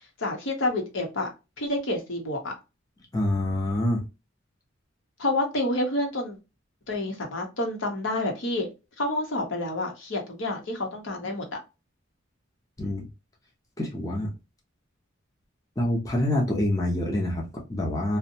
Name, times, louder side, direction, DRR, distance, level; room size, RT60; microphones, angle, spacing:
voice 1, 0.2-1.3 1.6-2.5 5.2-6.4 6.9-8.7 9.0-11.6, left 1 dB, 65° left, 0.8 m, -28 dB
voice 2, 3.1-4.0 12.8-13.1 13.8-14.3 15.8-18.2, left 1 dB, 15° left, 0.5 m, -26 dB
2.6 x 2.1 x 2.6 m
head